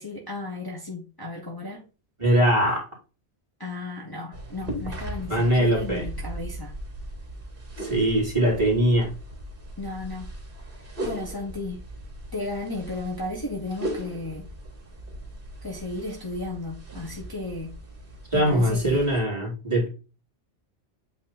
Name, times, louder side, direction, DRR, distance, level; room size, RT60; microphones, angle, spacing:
voice 1, 0.0-1.9 3.6-6.7 9.8-10.3 11.0-11.8 12.3-14.5 15.6-17.7 18.3-19.0, left 2 dB, 20° left, 1.3 m, -34 dB
voice 2, 2.2-2.8 5.3-6.0 7.8-9.1 18.3-19.9, equal, 25° right, 2.7 m, -22 dB
sound 1, 4.3-19.2, right 1 dB, 50° right, 2.6 m, -38 dB
8.1 x 3.2 x 4.2 m
omnidirectional pair, 1.2 m